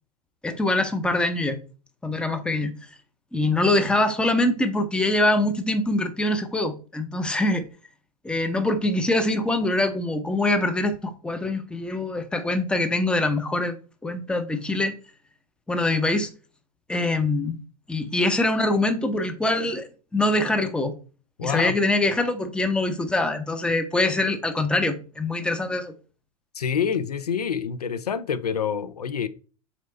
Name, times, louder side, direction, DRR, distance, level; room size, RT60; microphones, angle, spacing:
voice 1, 0.4-1.6 2.0-2.7 3.3-7.6 8.2-13.7 14.0-14.9 15.7-16.3 16.9-17.6 17.9-20.9 21.4-25.9, left 2 dB, 5° left, 0.6 m, -24 dB
voice 2, 21.4-21.8 26.5-29.3, left 7 dB, 80° left, 0.4 m, -27 dB
4.1 x 3.0 x 4.1 m
figure-of-eight pair, 85°, 20 cm